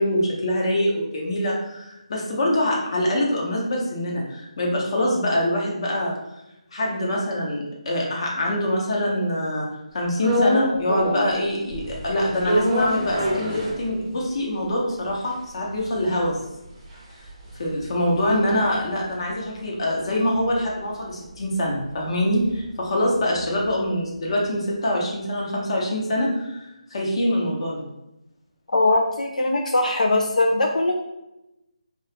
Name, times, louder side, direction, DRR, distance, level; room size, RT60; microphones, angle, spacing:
voice 1, 0.0-6.1 6.7-9.7 9.9-16.4 17.6-27.8, left 1 dB, 45° left, -2 dB, 0.8 m, -24 dB
sound 1, 10.2-11.4 11.7-14.3 14.7-14.8 15.0-19.5 19.8-23.8, equal, 15° right, 0.6 m, -28 dB
voice 2, 28.7-30.9, left 2 dB, 90° left, 2 dB, 0.4 m, -21 dB
2.8 x 2.3 x 3.3 m, 0.92 s
figure-of-eight pair, 165°, 4 cm